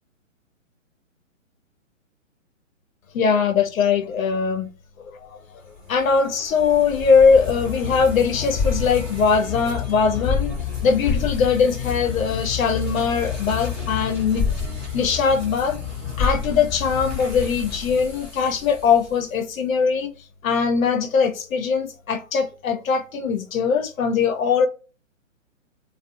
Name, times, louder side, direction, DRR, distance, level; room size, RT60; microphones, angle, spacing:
voice 1, 3.1-4.7 5.0-5.4 5.9-14.5 14.9-15.8 16.2-20.1 20.4-24.7, left 5 dB, 85° left, 0.6 m, -21 dB
sound 1, 5.8-19.2, left 6 dB, ahead, 0.6 m, -29 dB
2.5 x 2.3 x 2.4 m
hypercardioid pair, 150°, 39 cm